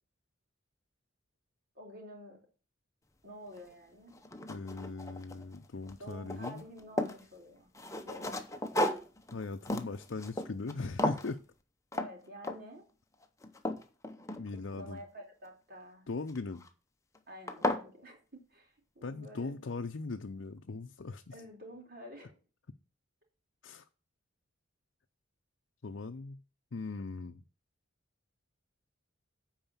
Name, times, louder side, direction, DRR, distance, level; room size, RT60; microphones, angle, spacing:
voice 1, 1.8-2.4 3.2-4.2 6.0-7.7 8.0-8.4 11.9-12.8 14.5-16.0 17.3-19.6 21.3-22.4, equal, 50° right, 3.7 m, -50 dB
sound 1, 3.6-3.7 4.1-5.6 5.9-7.2 7.7-10.7 11.0-11.3 11.9-12.1 12.4-12.8 13.2-14.8 16.3-16.7 17.1-17.2 17.5-17.9, left 1 dB, 15° left, 0.8 m, -35 dB
voice 2, 4.5-6.6 9.3-11.4 14.4-15.0 16.1-16.6 19.0-21.3 23.6-23.8 25.8-26.4 26.7-27.4, left 3 dB, 65° left, 0.6 m, -39 dB
9.0 x 4.9 x 7.1 m
head